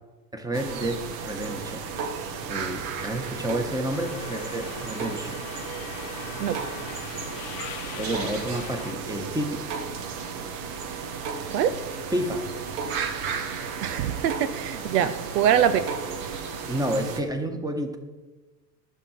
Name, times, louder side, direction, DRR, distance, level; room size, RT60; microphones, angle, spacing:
voice 1, 0.3-1.8 2.5-5.4 8.0-9.5 12.1-12.4 15.0-15.1 16.7-18.0, right 1 dB, 5° right, 1.6 m, -30 dB
sound 1, 0.5-17.2, right 6 dB, 45° right, 1.5 m, -34 dB
Subway metro underground, 3.9-8.9, left 14 dB, 50° left, 0.9 m, -41 dB
voice 2, 13.8-15.8, right 9 dB, 70° right, 0.8 m, -23 dB
11.0 x 6.5 x 7.5 m
hypercardioid pair, 85°, 49 cm